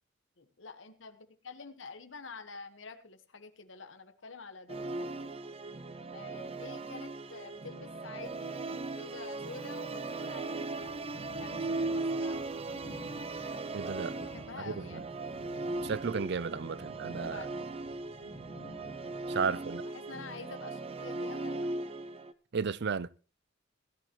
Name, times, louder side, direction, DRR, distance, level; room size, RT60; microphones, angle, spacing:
voice 1, 0.4-5.3 6.1-12.9 14.1-15.1 17.2-17.7 19.5-21.7, left 4 dB, 90° left, 1.4 m, -48 dB
Musical instrument, 4.7-22.3, right 3 dB, 30° right, 0.8 m, -38 dB
sound 1, 10.8-19.4, left 1 dB, 45° left, 1.0 m, -52 dB
voice 2, 13.7-14.1 14.7-15.0 15.8-17.4 19.3-19.8 22.5-23.1, right 5 dB, 65° right, 0.5 m, -33 dB
18.0 x 11.5 x 3.1 m
head